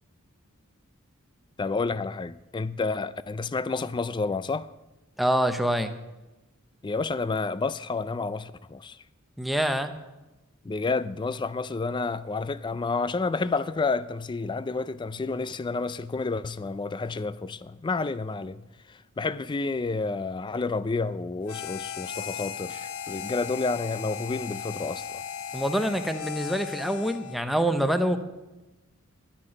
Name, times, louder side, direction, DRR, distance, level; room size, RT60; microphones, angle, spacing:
voice 1, 1.6-4.7 6.8-9.0 10.6-25.2, left 3 dB, 20° left, 0.4 m, -30 dB
voice 2, 5.2-6.0 9.4-9.9 25.5-28.2, equal, ahead, 0.7 m, -25 dB
Harmonica, 21.5-27.5, left 8 dB, 80° left, 0.7 m, -37 dB
11.0 x 6.0 x 8.8 m
head